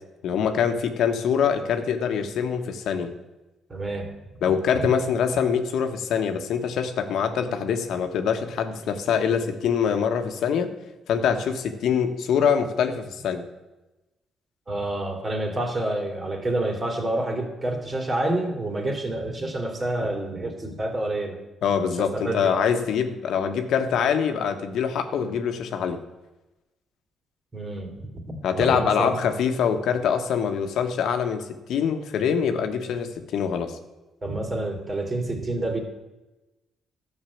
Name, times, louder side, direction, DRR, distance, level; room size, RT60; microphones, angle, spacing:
voice 1, 0.2-3.1 4.4-10.7 11.1-13.4 21.6-26.0 28.4-33.8, left 7 dB, 75° left, 7 dB, 1.3 m, -24 dB
voice 2, 3.7-4.1 14.7-21.4 21.9-22.6 27.5-29.1 34.2-35.8, right 1 dB, 30° right, 3 dB, 2.9 m, -28 dB
12.5 x 6.6 x 8.5 m, 1.0 s
cardioid pair, 90°, 0 cm